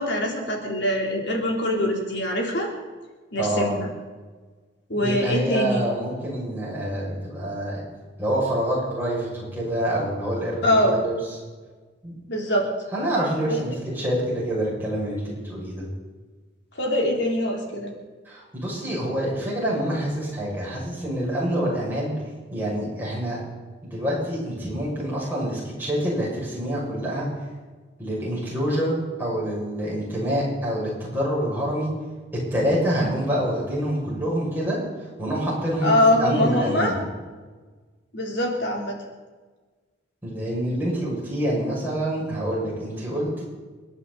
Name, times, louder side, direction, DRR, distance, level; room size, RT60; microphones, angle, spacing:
voice 1, 0.0-2.7 3.3-3.9 4.9-5.8 10.6-11.0 12.3-12.7 13.5-13.6 16.7-17.9 35.8-36.9 38.1-39.0, left 1 dB, 60° left, 0 dB, 3.4 m, -23 dB
voice 2, 3.4-3.8 5.0-7.8 8.2-11.1 12.0-12.2 12.9-15.9 18.2-22.1 22.5-23.4 23.8-27.3 28.0-31.9 32.5-37.0 40.2-43.4, right 1 dB, 10° right, -6 dB, 6.4 m, -26 dB
29.5 x 10.5 x 4.1 m, 1.4 s
head